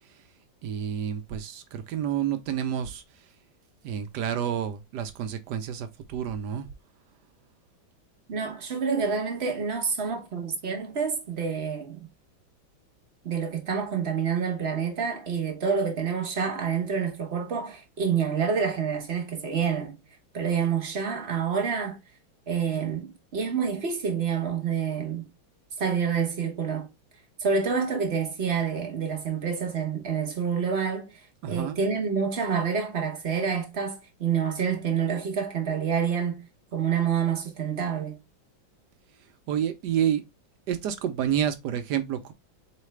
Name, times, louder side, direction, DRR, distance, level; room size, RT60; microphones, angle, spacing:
voice 1, 0.6-3.0 3.8-6.7 31.4-31.8 39.5-40.2 40.7-42.3, right 9 dB, 70° right, 1.1 m, -29 dB
voice 2, 8.3-12.1 13.2-20.0 20.3-22.0 22.5-25.3 25.8-26.9 27.4-36.5 36.7-38.2, right 6 dB, 45° right, 0.9 m, -28 dB
4.2 x 3.2 x 3.1 m
omnidirectional pair, 2.2 m